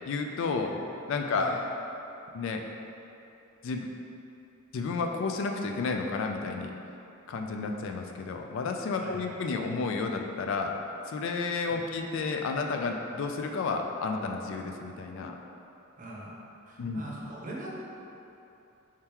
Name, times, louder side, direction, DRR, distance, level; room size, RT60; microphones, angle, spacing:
voice 1, 0.1-0.7 1.1-1.5 2.3-2.6 3.6-3.9 4.7-6.7 7.3-10.7 11.1-15.3 16.8-17.0, left 4 dB, 65° left, 3 dB, 0.3 m, -31 dB
voice 2, 9.0-9.3 11.7-11.8 16.0-16.4 16.7-17.7, right 1 dB, 40° right, -5 dB, 0.7 m, -42 dB
4.4 x 3.6 x 2.9 m, 2.8 s
head